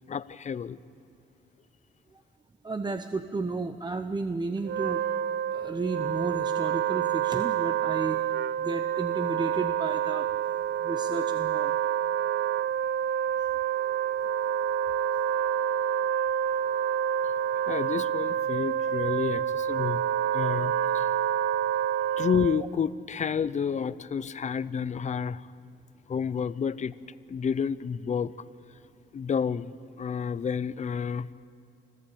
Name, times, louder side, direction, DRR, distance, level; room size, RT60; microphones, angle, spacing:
voice 1, 0.1-0.8 17.7-20.0 20.3-21.1 22.2-25.4 26.1-26.9 27.3-28.3 29.1-31.3, left 7 dB, 35° left, 17 dB, 0.7 m, -30 dB
voice 2, 2.6-5.0 5.5-8.2 8.6-10.3 10.8-11.7, right 3 dB, 20° right, 9 dB, 0.8 m, -33 dB
Wind instrument woodwind instrument, 4.6-22.7, right 9 dB, 60° right, 0.5 m, -28 dB
26.0 x 14.5 x 8.6 m, 2.6 s
cardioid pair, 90°, 20 cm